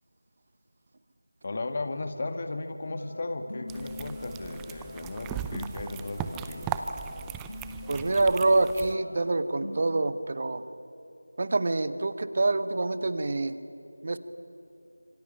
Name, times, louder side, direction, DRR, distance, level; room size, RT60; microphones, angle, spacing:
voice 1, 1.4-6.8, left 2 dB, 35° left, 8 dB, 1.8 m, -35 dB
sound 1, 3.0-10.0, left 1 dB, 70° left, 3.0 m, -44 dB
sound 2, 3.7-8.9, right 8 dB, 5° right, 0.5 m, -38 dB
voice 2, 7.9-10.6 11.4-13.5 14.0-14.2, right 2 dB, 35° right, 13 dB, 1.2 m, -26 dB
26.5 x 25.0 x 8.7 m, 2.8 s
figure-of-eight pair, 170°, 0 cm